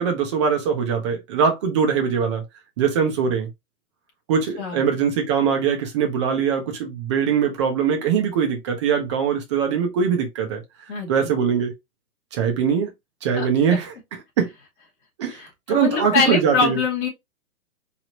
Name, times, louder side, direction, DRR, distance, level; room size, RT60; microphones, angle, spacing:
voice 1, 0.0-2.4 2.8-3.5 4.3-10.6 11.1-11.7 12.3-12.9 13.2-13.9 14.4-14.5 15.2-15.4 15.7-16.8, right 7 dB, 20° right, 0.7 m, -22 dB
voice 2, 15.3-17.1, left 5 dB, 35° left, 2.1 m, -23 dB
4.6 x 2.8 x 2.9 m
hypercardioid pair, 160°, 45 cm